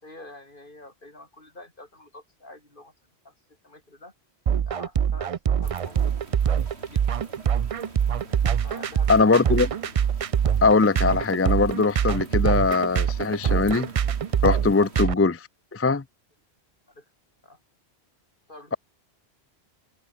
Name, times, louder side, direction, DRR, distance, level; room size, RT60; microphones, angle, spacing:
voice 1, 0.0-2.9 3.2-3.3 3.6-4.1 4.7-6.1 6.8-7.1 8.6-9.6 16.9-17.1 17.4-17.6 18.5-18.8, left 2 dB, 50° left, 4.8 m, -46 dB
sound 1, 4.5-15.1, right 8 dB, 50° right, 0.4 m, -24 dB
sound 2, 5.6-15.0, right 3 dB, 80° right, 2.9 m, -46 dB
voice 2, 9.1-9.7 10.6-13.9 14.4-16.0, left 4 dB, 25° left, 0.3 m, -21 dB
open air
omnidirectional pair, 1.1 m